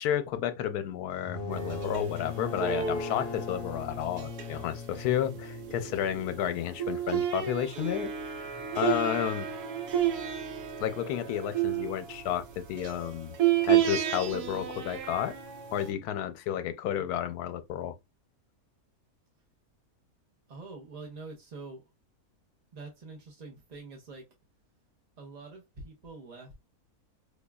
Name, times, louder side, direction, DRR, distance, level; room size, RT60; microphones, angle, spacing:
voice 1, 0.0-9.5 10.8-13.4 13.7-15.3 15.7-17.9, left 10 dB, 85° left, 1.1 m, -31 dB
sound 1, 1.1-6.6, left 5 dB, 55° left, 0.7 m, -40 dB
sound 2, 1.5-15.9, right 10 dB, 90° right, 1.3 m, -32 dB
voice 2, 20.5-21.9 22.7-24.2 25.2-26.5, right 3 dB, 45° right, 0.5 m, -45 dB
5.1 x 2.2 x 2.2 m
omnidirectional pair, 1.6 m